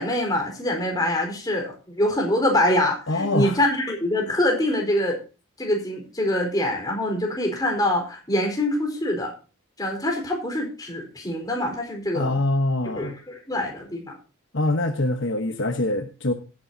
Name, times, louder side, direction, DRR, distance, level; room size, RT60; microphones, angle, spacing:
voice 1, 0.0-5.2 5.6-9.3 9.8-12.3 13.0-14.1, left 1 dB, 20° left, 1 dB, 4.4 m, -24 dB
voice 2, 3.1-3.6 12.1-13.2 14.5-16.3, left 2 dB, 60° left, 7 dB, 1.1 m, -24 dB
17.5 x 9.8 x 2.8 m, 0.32 s
head